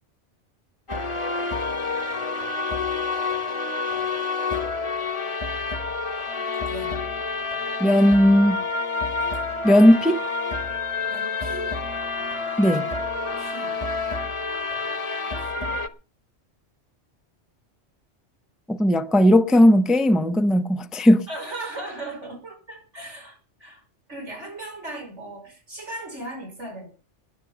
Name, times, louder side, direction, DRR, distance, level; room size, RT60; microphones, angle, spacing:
sound 1, 0.9-15.9, left 4 dB, 30° left, 1.0 m, -28 dB
sound 2, 6.2-14.3, left 2 dB, 40° right, 2.7 m, -40 dB
voice 1, 6.7-7.0 11.1-11.7 13.4-13.7 15.3-15.8 21.3-23.8 24.1-26.9, right 2 dB, 75° right, 5.5 m, -37 dB
voice 2, 7.8-8.6 9.6-10.2 12.6-12.9 18.7-21.3, equal, ahead, 0.5 m, -17 dB
20.0 x 8.0 x 5.6 m
omnidirectional pair, 1.2 m